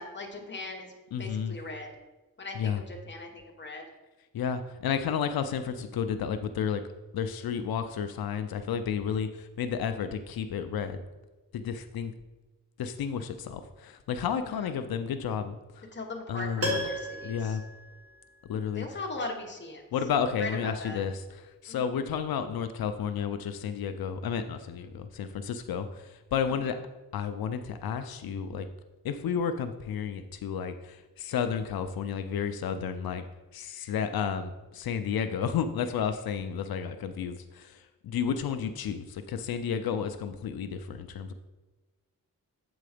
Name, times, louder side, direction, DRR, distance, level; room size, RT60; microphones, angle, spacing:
voice 1, 0.0-0.9 1.2-1.9 2.4-3.8 14.3-14.7 15.9-17.6 18.7-19.8 20.4-21.0 21.7-21.9 26.5-26.8, left 2 dB, 30° left, 2 dB, 1.1 m, -39 dB
voice 2, 1.1-1.5 2.6-2.8 4.3-6.8 7.1-11.0 11.5-12.1 12.8-15.9 16.3-16.8 17.2-17.6 18.5-18.9 19.9-21.2 21.6-26.8 27.1-28.7 29.0-33.2 33.5-41.3, left 7 dB, 90° left, 9 dB, 0.5 m, -32 dB
Piano, 16.6-18.7 19.0-19.1, equal, 40° right, 1.4 m, -35 dB
7.6 x 4.0 x 4.9 m, 1.2 s
wide cardioid pair, 140°, 35 cm